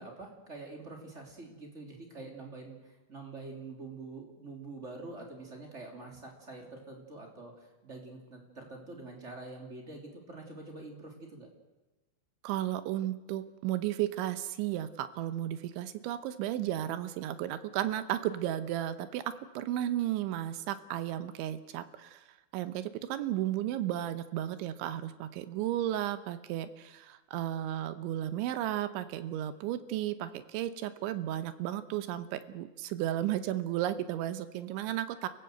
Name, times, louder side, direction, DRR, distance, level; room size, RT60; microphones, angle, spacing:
voice 1, 0.0-11.5, right 3 dB, 20° right, 1 dB, 2.8 m, -46 dB
voice 2, 12.4-22.2 22.5-35.3, right 12 dB, 80° right, 12 dB, 3.3 m, -34 dB
29.5 x 16.0 x 7.9 m, 1.1 s
omnidirectional pair, 5.4 m